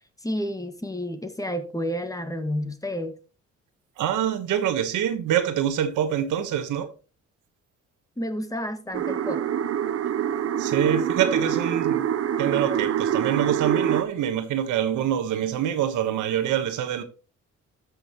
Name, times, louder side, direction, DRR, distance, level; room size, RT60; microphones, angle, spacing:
voice 1, 0.2-3.1 8.2-9.4, equal, 10° left, 1.7 m, -30 dB
voice 2, 4.0-6.9 10.6-12.1 12.4-17.0, right 10 dB, 85° right, 1.3 m, -25 dB
sound 1, 8.9-14.0, right 9 dB, 50° right, 0.8 m, -25 dB
13.5 x 6.4 x 3.0 m
cardioid pair, 90°, 30 cm